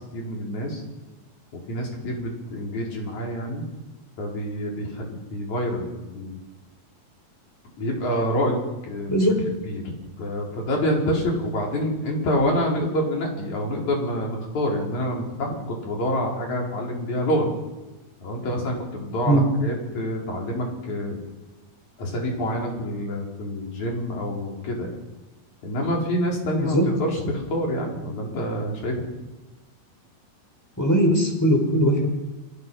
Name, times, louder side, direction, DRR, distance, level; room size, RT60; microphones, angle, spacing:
voice 1, 0.1-0.8 1.7-3.6 4.2-6.4 7.8-9.2 9.6-9.8 10.2-17.5 18.2-21.2 22.0-25.0 25.6-29.2, equal, 50° left, -1 dB, 6.1 m, -27 dB
voice 2, 30.8-32.1, equal, 5° left, 3 dB, 5.0 m, -20 dB
27.5 x 26.5 x 5.8 m, 1.1 s
omnidirectional pair, 4.3 m